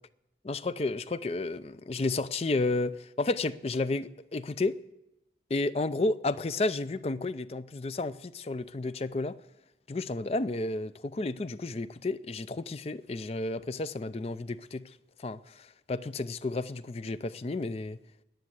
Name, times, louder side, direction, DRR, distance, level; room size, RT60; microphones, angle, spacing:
voice 1, 0.4-4.8 5.5-9.3 9.9-14.8 15.2-18.0, left 2 dB, 35° left, 0.4 m, -32 dB
10.5 x 10.5 x 8.0 m
head